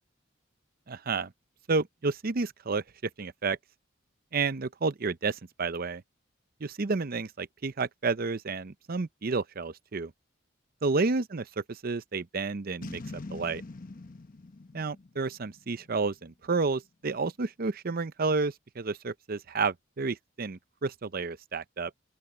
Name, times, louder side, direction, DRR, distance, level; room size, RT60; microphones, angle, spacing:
voice 1, 0.9-1.3 1.7-2.8 3.2-3.6 4.3-6.0 6.6-10.1 10.8-13.0 13.3-13.6 14.7-21.9, right 4 dB, 50° right, 0.7 m, -30 dB
Boom, 12.8-16.1, left 2 dB, 45° left, 0.9 m, -43 dB
open air
head